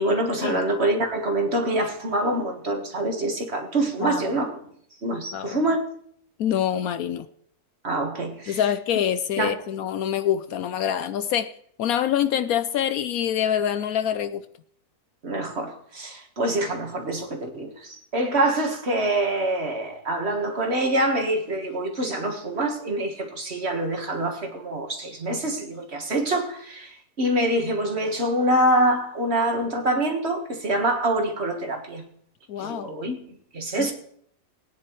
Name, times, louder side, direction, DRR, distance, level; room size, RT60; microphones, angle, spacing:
voice 1, 0.0-4.6 5.0-5.8 7.8-8.6 9.4-9.5 15.2-32.1 32.6-33.9, right 1 dB, 45° right, 1.8 m, -25 dB
voice 2, 4.0-4.3 5.3-5.6 6.4-7.3 8.5-11.5 11.8-14.4 32.5-32.9 33.8-33.9, left 9 dB, 70° left, 1.0 m, -25 dB
20.0 x 9.8 x 3.1 m
omnidirectional pair, 1.7 m